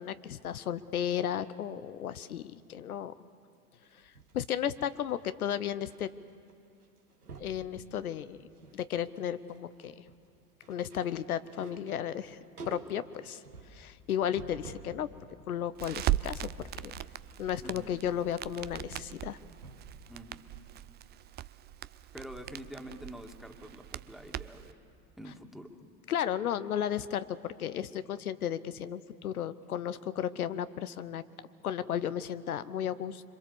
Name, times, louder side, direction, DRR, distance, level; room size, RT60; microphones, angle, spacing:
voice 1, 0.0-3.1 3.9-6.1 7.4-8.5 8.7-10.0 10.7-12.4 12.7-13.4 13.7-15.1 15.5-16.5 16.8-16.9 17.4-19.4 26.1-31.2 31.6-33.3, left 9 dB, 75° left, 13 dB, 0.8 m, -34 dB
sound 1, 3.8-6.0 6.3-6.5 6.8-7.6 8.2-8.8 9.1-15.0 15.4-20.1 20.4-20.5, right 4 dB, 85° right, 2.2 m, -51 dB
Crackle, 15.8-24.7, right 12 dB, 25° right, 0.5 m, -39 dB
voice 2, 17.6-18.0 20.1-20.5 22.1-24.8 25.2-25.7, equal, ahead, 4 dB, 2.3 m, -46 dB
26.5 x 24.0 x 7.1 m, 2.4 s
figure-of-eight pair, 75°, 44 cm